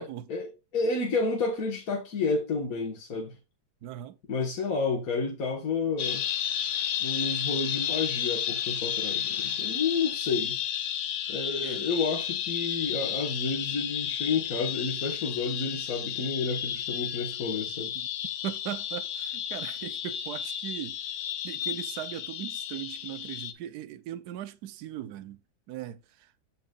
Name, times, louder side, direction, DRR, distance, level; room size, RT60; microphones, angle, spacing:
voice 1, 0.3-3.4 4.3-6.2 7.0-10.6 11.3-17.9, left 4 dB, 45° left, 1.8 m, -30 dB
voice 2, 3.8-4.2 11.6-11.9 17.9-18.1 18.4-21.0 21.4-25.4 25.7-26.3, right 12 dB, 65° right, 1.1 m, -39 dB
sound 1, 6.0-23.5, left 9 dB, 85° left, 1.7 m, -32 dB
13.5 x 4.7 x 2.4 m
omnidirectional pair, 2.2 m